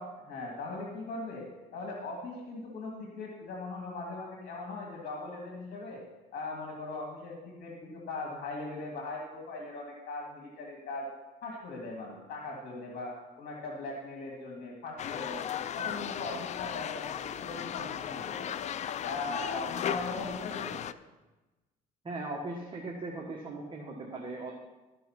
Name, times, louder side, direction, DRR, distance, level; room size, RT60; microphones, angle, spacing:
voice 1, 0.0-6.0 6.3-11.1 11.4-15.4 15.7-18.6 19.0-20.9, left 2 dB, 65° left, 0 dB, 2.3 m, -39 dB
sound 1, 15.0-20.9, left 10 dB, 45° left, 0.4 m, -36 dB
voice 2, 22.0-24.5, right 2 dB, 30° right, -1 dB, 1.4 m, -38 dB
13.0 x 5.6 x 5.8 m, 1.1 s
cardioid pair, 110°, 17 cm